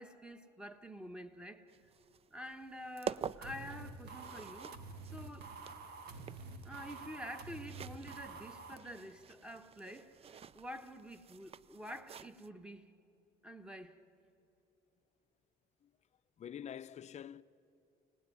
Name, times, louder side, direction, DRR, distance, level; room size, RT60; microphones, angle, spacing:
voice 1, 0.0-1.7 2.3-4.7 5.1-5.5 6.6-12.9 13.4-14.0, equal, 5° right, 1.4 m, -48 dB
sound 1, 1.7-12.5, right 7 dB, 35° right, 0.5 m, -49 dB
sound 2, 3.4-8.7, right 3 dB, 75° right, 1.7 m, -48 dB
voice 2, 16.4-17.4, left 9 dB, 40° left, 0.6 m, -46 dB
29.0 x 18.5 x 9.5 m
cardioid pair, 110°, 17 cm